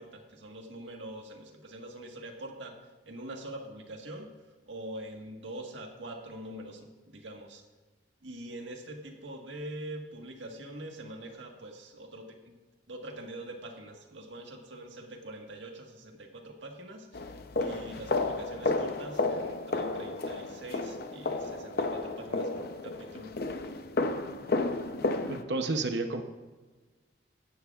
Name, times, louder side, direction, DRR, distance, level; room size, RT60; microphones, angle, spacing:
voice 1, 0.0-2.7 3.0-4.3 4.7-7.6 8.2-12.5 12.9-17.3 17.6-23.4, right 1 dB, 85° right, 2 dB, 1.6 m, -44 dB
sound 1, 17.1-25.4, left 2 dB, 55° left, 0.7 m, -32 dB
voice 2, 25.2-26.2, right 3 dB, 65° right, 5 dB, 0.9 m, -31 dB
16.5 x 11.5 x 2.5 m, 1.3 s
head